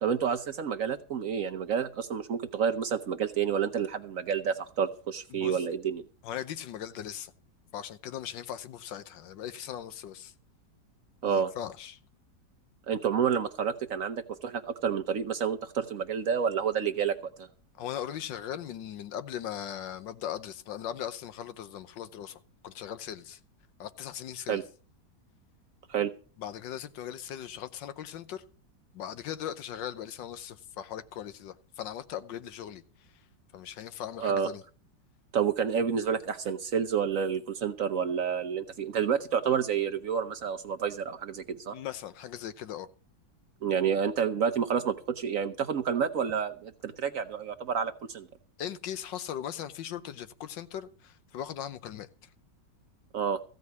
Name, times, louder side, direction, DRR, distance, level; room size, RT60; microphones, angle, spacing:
voice 1, 0.0-6.0 11.2-11.5 12.9-17.5 24.5-24.6 25.9-26.1 34.2-34.5 35.3-41.7 43.6-48.3 53.1-53.4, right 7 dB, 60° right, 1.0 m, -29 dB
voice 2, 5.3-5.6 6.2-7.3 7.7-10.3 11.2-12.0 17.7-23.4 23.8-24.6 26.4-28.5 28.9-33.2 33.5-34.6 41.7-42.9 48.6-52.3, left 10 dB, 80° left, 1.5 m, -39 dB
15.0 x 5.3 x 9.4 m
omnidirectional pair, 2.0 m